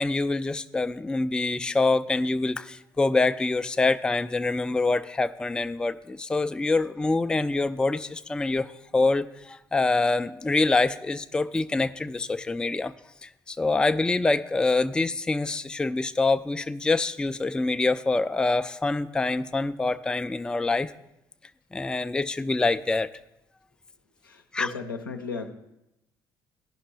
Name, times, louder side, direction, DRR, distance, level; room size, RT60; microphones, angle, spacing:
voice 1, 0.0-12.9 13.2-20.9 21.7-23.1 24.5-24.7, left 3 dB, 10° left, 12 dB, 0.3 m, -25 dB
voice 2, 24.2-25.5, left 4 dB, 85° left, 3 dB, 0.6 m, -35 dB
15.0 x 5.8 x 3.2 m, 0.88 s
figure-of-eight pair, 50°, 11 cm